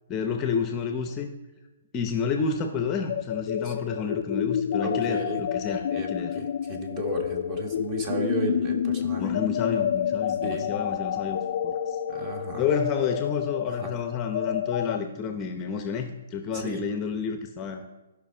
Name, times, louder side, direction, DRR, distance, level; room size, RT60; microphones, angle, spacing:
voice 1, 0.1-1.3 1.9-6.3 9.2-12.0 12.6-17.9, left 6 dB, 20° left, 5 dB, 0.7 m, -30 dB
sound 1, 3.1-15.0, left 9 dB, 50° left, 0.3 m, -29 dB
voice 2, 4.8-5.4 5.9-6.1 6.3-9.3 10.4-10.7 12.1-12.7 13.6-13.9 16.5-16.8, right 3 dB, 25° right, 3 dB, 1.5 m, -34 dB
15.0 x 5.6 x 4.4 m, 1.1 s
hypercardioid pair, 160°, 0 cm